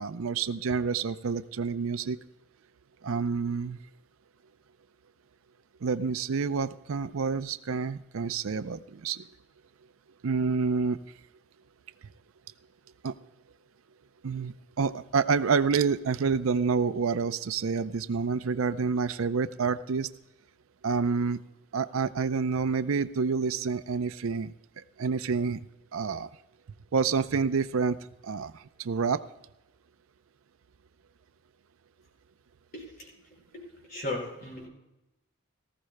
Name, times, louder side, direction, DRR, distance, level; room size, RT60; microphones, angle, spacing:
voice 1, 0.0-2.2 3.0-3.8 5.8-9.2 10.2-11.0 13.0-13.1 14.2-20.1 20.8-21.4 21.7-24.5 25.0-25.6 25.9-26.3 26.9-28.0 28.2-29.2, right 5 dB, 80° right, 13 dB, 0.5 m, -28 dB
voice 2, 32.7-33.1 33.5-34.7, left 2 dB, 45° left, -1 dB, 5.1 m, -37 dB
18.5 x 15.0 x 2.2 m, 0.92 s
head